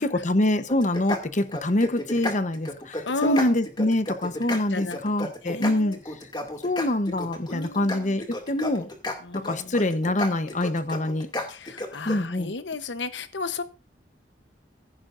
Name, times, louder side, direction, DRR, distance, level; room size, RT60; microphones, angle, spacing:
voice 1, 0.0-6.0 6.6-8.9 9.3-11.3 12.1-12.5, left 1 dB, 40° left, 0.9 m, -25 dB
sound 1, 0.7-12.2, left 1 dB, 25° left, 2.4 m, -33 dB
voice 2, 3.1-3.6 4.7-6.0 7.5-8.2 9.2-9.8 11.5-13.6, left 4 dB, 80° left, 1.0 m, -34 dB
15.5 x 10.5 x 2.6 m
head